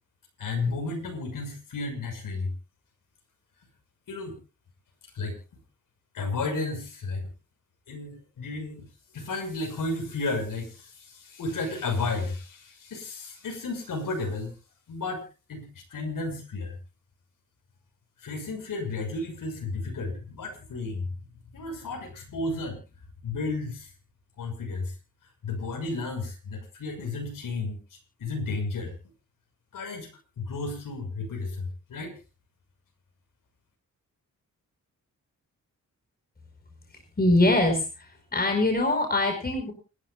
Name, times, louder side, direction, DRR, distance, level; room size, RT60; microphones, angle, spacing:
voice 1, 0.4-2.5 4.1-4.4 5.1-5.4 6.1-7.2 7.9-8.9 9.1-14.5 14.9-15.2 15.5-16.7 18.2-21.1 21.5-22.8 23.2-23.9 24.4-24.9 25.4-27.8 28.2-28.9 29.7-30.1 30.4-32.2, left 3 dB, 85° left, 2 dB, 6.2 m, -33 dB
voice 2, 37.2-38.1 38.3-39.7, left 2 dB, 30° left, 4 dB, 5.1 m, -23 dB
30.0 x 13.0 x 2.4 m, 0.33 s
wide cardioid pair, 115°, 32 cm